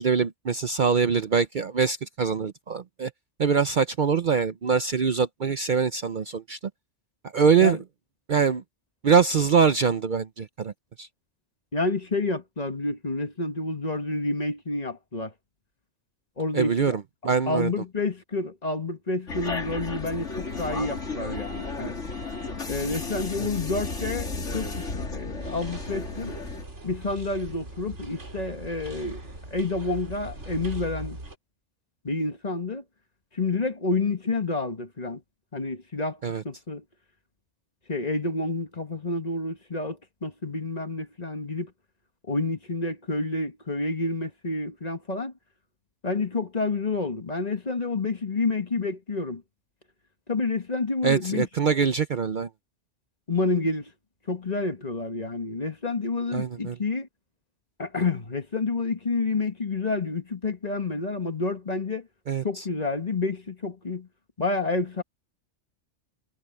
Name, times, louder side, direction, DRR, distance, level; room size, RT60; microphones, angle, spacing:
voice 1, 0.0-3.1 3.4-6.6 7.3-7.8 8.3-8.6 9.0-10.7 11.0-11.1 16.5-17.7 23.4-23.5 36.2-36.4 51.0-52.5 56.3-56.8 62.3-62.6, right 6 dB, 50° right, 0.7 m, -23 dB
voice 2, 11.7-15.3 16.4-17.0 17.5-22.0 22.7-26.4 26.8-29.2 29.5-31.2 32.0-32.8 33.3-35.2 35.5-36.2 36.4-36.8 37.9-41.7 42.3-45.3 46.0-49.4 50.3-51.5 53.3-53.9 54.3-57.1 57.8-62.1 62.4-64.1 64.4-65.0, left 3 dB, 35° left, 1.6 m, -29 dB
sound 1, 19.3-26.6, left 3 dB, 85° left, 3.1 m, -33 dB
sound 2, 25.4-31.4, right 2 dB, 75° right, 4.4 m, -40 dB
omnidirectional pair, 1.2 m